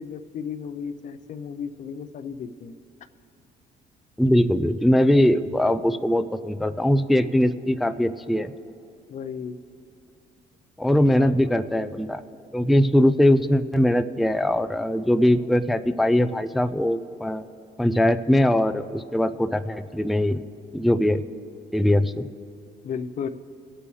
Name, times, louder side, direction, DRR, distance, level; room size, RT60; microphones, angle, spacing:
voice 1, 0.0-2.7 9.1-9.6 11.2-11.6 22.8-23.3, left 6 dB, 45° left, 10 dB, 0.6 m, -34 dB
voice 2, 4.2-8.5 10.8-12.2 12.5-17.4 17.8-20.4 20.7-21.2 21.7-22.3, left 1 dB, ahead, 10 dB, 0.3 m, -21 dB
22.0 x 8.5 x 3.2 m, 2.8 s
cardioid pair, 110°, 17 cm